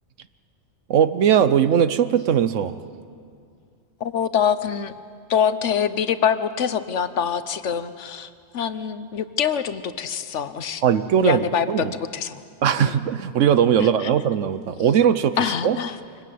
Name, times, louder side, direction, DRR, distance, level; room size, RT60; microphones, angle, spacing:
voice 1, 0.9-2.8 10.8-11.9 12.6-15.4 15.6-15.8, right 8 dB, 80° right, 13 dB, 1.2 m, -19 dB
voice 2, 4.0-4.9 5.3-8.3 8.5-10.8 11.2-12.4 12.8-12.9 13.8-14.1 15.4-16.0, left 8 dB, 70° left, 12 dB, 1.2 m, -24 dB
24.5 x 19.5 x 9.3 m, 2.3 s
omnidirectional pair, 1.3 m